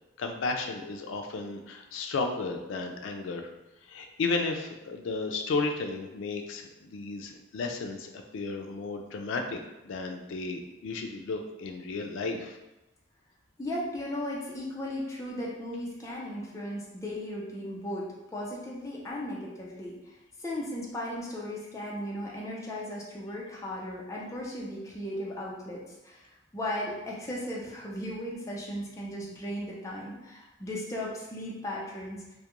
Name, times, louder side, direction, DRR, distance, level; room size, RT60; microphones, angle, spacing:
voice 1, 0.2-3.5 3.9-12.6, left 3 dB, 80° left, 4 dB, 0.3 m, -33 dB
voice 2, 13.6-20.0 20.4-26.2 26.5-32.2, left 1 dB, 15° left, -4 dB, 0.4 m, -36 dB
2.3 x 2.1 x 2.9 m, 0.98 s
head